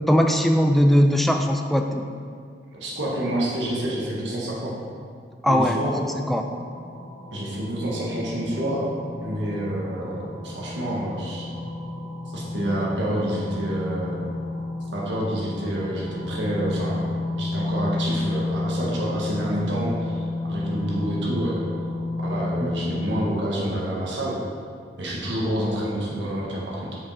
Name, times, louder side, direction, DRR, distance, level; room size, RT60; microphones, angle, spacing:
voice 1, 0.1-2.1 5.4-5.8 6.3-6.5 22.6-22.8, equal, ahead, 4 dB, 0.3 m, -19 dB
voice 2, 2.7-4.7 5.4-5.9 7.3-8.9 9.2-11.5 12.3-14.2 14.9-17.0 17.4-21.6 22.2-24.4 25.0-26.9, right 1 dB, 85° right, -4 dB, 1.3 m, -28 dB
sound 1, 5.6-23.3, left 2 dB, 80° left, 1.0 m, -31 dB
6.1 x 5.0 x 4.1 m, 2.2 s
head